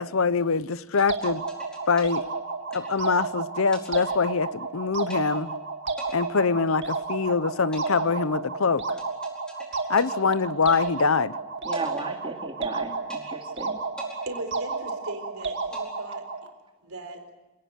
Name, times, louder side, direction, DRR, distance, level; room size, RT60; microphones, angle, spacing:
voice 1, 0.0-1.4 1.9-2.3 2.7-5.5 6.1-8.8 9.9-11.4, left 4 dB, 70° left, 0.8 m, -24 dB
sound 1, 1.0-3.3 3.7-4.7 5.1-5.6 6.0-7.2 7.7-11.3 11.7-12.7 13.1-13.6 14.0-15.2 15.7-16.7, equal, 5° left, 4.7 m, -47 dB
sound 2, 1.1-16.5, right 4 dB, 55° right, 2.3 m, -32 dB
voice 2, 11.6-13.8, right 3 dB, 25° right, 2.7 m, -35 dB
voice 3, 14.3-16.2 16.8-17.2, right 2 dB, 75° right, 4.0 m, -38 dB
27.0 x 18.5 x 8.0 m
head